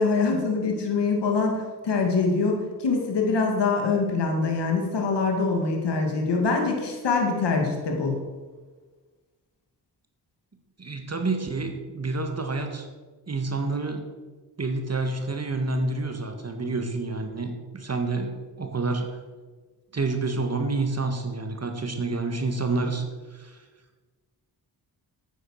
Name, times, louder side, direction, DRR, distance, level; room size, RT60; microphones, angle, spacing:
voice 1, 0.0-8.2, left 4 dB, 85° left, 1 dB, 2.2 m, -24 dB
voice 2, 10.8-12.9 13.3-14.1 14.6-19.2 19.9-23.0 23.3-23.6, right 3 dB, 40° right, 5 dB, 1.7 m, -28 dB
9.4 x 9.2 x 6.4 m, 1.3 s
cardioid pair, 65°, 41 cm